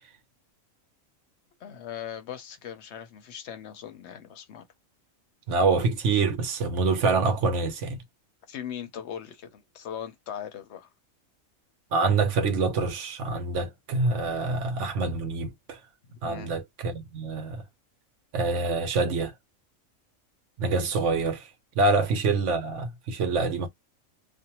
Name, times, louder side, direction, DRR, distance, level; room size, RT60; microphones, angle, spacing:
voice 1, 1.6-4.7 8.5-10.9 16.2-16.6, left 9 dB, 65° left, 0.8 m, -39 dB
voice 2, 5.5-8.0 11.9-15.8 16.2-17.6 18.3-19.3 20.6-21.5 21.8-23.7, right 3 dB, 65° right, 1.0 m, -26 dB
2.5 x 2.1 x 2.8 m
omnidirectional pair, 1.4 m